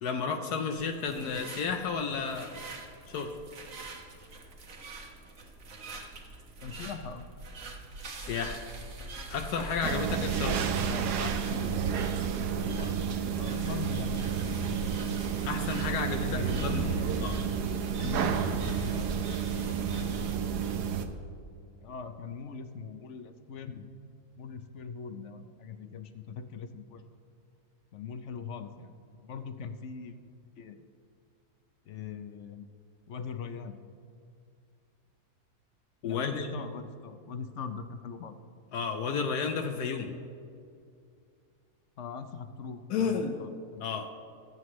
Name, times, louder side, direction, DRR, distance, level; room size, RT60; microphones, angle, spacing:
voice 1, 0.0-2.6 3.1-3.4 8.2-8.6 9.3-10.6 15.4-17.3 36.0-36.5 38.7-40.2 42.9-43.4 43.8-44.1, left 5 dB, 80° left, 5 dB, 1.3 m, -32 dB
sound 1, 0.7-20.4, right 2 dB, 55° right, 1.6 m, -43 dB
voice 2, 6.6-7.2 10.5-12.1 12.5-13.0 13.4-14.2 14.5-14.9 16.1-19.2 19.8-20.2 21.8-23.9 24.4-27.1 27.9-29.0 29.2-30.2 30.6-30.9 31.9-32.7 33.1-33.8 36.0-38.4 42.0-43.9, left 5 dB, 55° left, 9 dB, 0.9 m, -41 dB
sound 2, 9.8-21.1, right 7 dB, 80° right, 1.3 m, -31 dB
23.0 x 7.8 x 3.1 m, 2.4 s
omnidirectional pair, 1.7 m